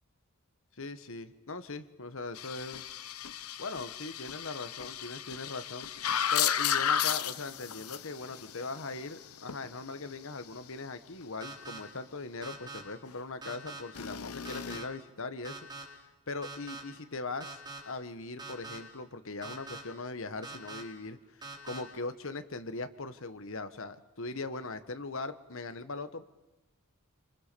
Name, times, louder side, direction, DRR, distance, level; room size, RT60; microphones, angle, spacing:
voice 1, 0.8-2.8 3.6-15.7 16.3-26.3, left 3 dB, 65° left, 11 dB, 1.4 m, -40 dB
sound 1, 2.3-9.7 13.9-14.8, left 9 dB, 85° left, 0.9 m, -34 dB
sound 2, 11.4-11.8 12.4-12.8 13.4-13.8 14.4-14.8 15.4-15.8 16.4-16.8 17.4-17.8 18.4-18.8 19.4-19.8 20.4-20.8 21.4-21.8, right 3 dB, 20° right, 4.2 m, -43 dB
27.5 x 25.5 x 6.9 m, 1.0 s
head